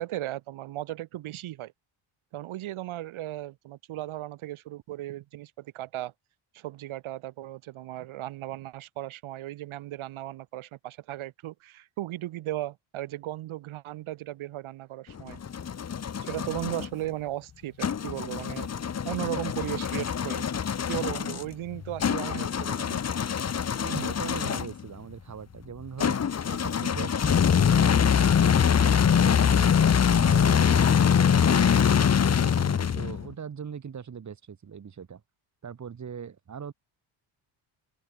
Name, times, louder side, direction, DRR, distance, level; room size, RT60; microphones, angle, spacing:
voice 1, 0.0-1.7 2.3-6.1 6.5-15.4 16.2-20.5 20.9-23.0, right 14 dB, 75° right, 2.0 m, -36 dB
sound 1, 15.1-16.9 17.8-24.8 26.0-33.3, left 7 dB, 30° left, 1.4 m, -24 dB
voice 2, 23.8-29.7 30.1-31.7 32.2-35.2 35.6-36.7, right 7 dB, 35° right, 3.2 m, -41 dB
cardioid pair, 140°, 49 cm